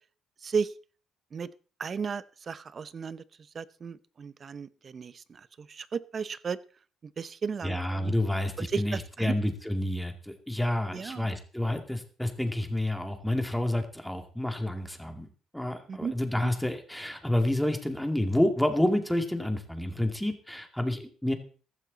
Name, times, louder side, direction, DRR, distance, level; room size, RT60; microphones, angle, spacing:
voice 1, 1.8-3.2 3.5-6.6 7.2-8.1 8.6-9.3 10.9-11.3 15.9-16.1 16.4-16.5, right 5 dB, 40° right, 17 dB, 0.7 m, -34 dB
voice 2, 7.6-15.3 15.5-21.3, left 1 dB, 5° left, 6 dB, 2.4 m, -29 dB
15.0 x 12.5 x 4.0 m, 0.39 s
cardioid pair, 100°, 0 cm